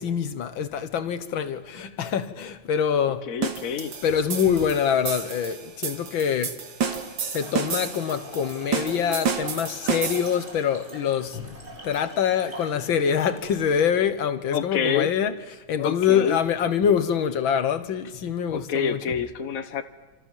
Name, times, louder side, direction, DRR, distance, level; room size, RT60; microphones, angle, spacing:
voice 1, 0.0-3.3 4.0-6.6 7.3-11.6 11.8-19.0, left 8 dB, 75° left, 1.9 m, -25 dB
voice 2, 3.3-3.9 14.5-15.1 15.8-16.4 18.5-19.8, left 7 dB, 45° left, 1.6 m, -27 dB
sound 1, 3.4-10.5, right 6 dB, 70° right, 2.4 m, -31 dB
Trickle dribble / Fill (with liquid), 7.3-14.0, right 2 dB, 30° right, 4.9 m, -43 dB
27.5 x 27.0 x 7.3 m
omnidirectional pair, 2.2 m